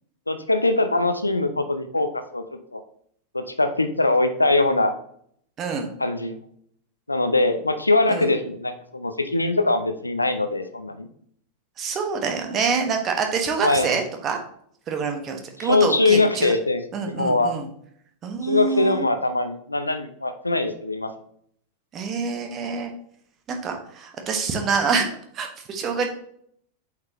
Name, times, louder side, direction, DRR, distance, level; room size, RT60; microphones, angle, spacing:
voice 1, 0.3-2.4 2.7-2.8 3.3-4.9 6.0-6.4 7.1-11.1 13.6-13.9 15.6-17.5 18.4-21.1, left 2 dB, 85° left, 9 dB, 0.6 m, -22 dB
voice 2, 11.8-14.4 14.9-16.5 16.9-17.7 18.2-19.0 21.9-22.9 23.5-25.1 25.3-26.1, right 5 dB, 30° right, 3 dB, 1.3 m, -26 dB
8.1 x 4.9 x 2.9 m, 0.65 s
figure-of-eight pair, 90°, 0 cm